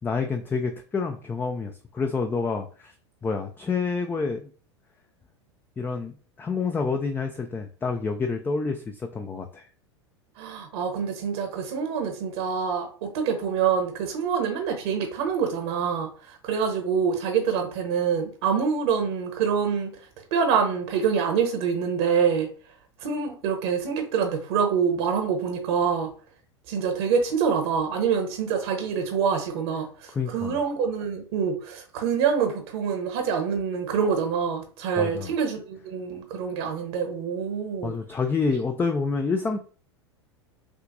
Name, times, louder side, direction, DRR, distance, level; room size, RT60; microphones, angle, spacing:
voice 1, 0.0-2.9 3.2-4.5 5.8-9.7 30.1-30.6 35.0-35.3 37.8-39.6, left 4 dB, 15° left, 5 dB, 0.4 m, -28 dB
voice 2, 10.4-16.1 16.4-19.9 20.3-22.5 23.0-26.1 26.7-29.9 30.3-37.9, right 6 dB, 60° right, 4 dB, 1.0 m, -26 dB
6.1 x 2.5 x 2.6 m, 0.41 s
figure-of-eight pair, 85°, 15 cm